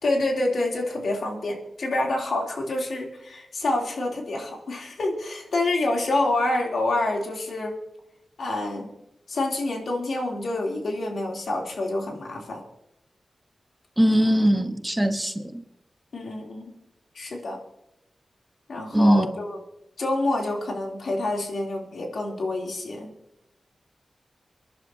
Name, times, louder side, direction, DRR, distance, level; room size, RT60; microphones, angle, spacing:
voice 1, 0.0-7.7 8.4-8.9 9.3-12.6 16.1-16.7 17.1-17.6 18.7-19.6 20.0-23.1, left 2 dB, 80° left, 0 dB, 3.1 m, -27 dB
voice 2, 14.0-15.6 18.9-19.3, equal, 10° right, 7 dB, 1.1 m, -20 dB
28.5 x 11.0 x 2.8 m, 0.83 s
wide cardioid pair, 75°, 0 cm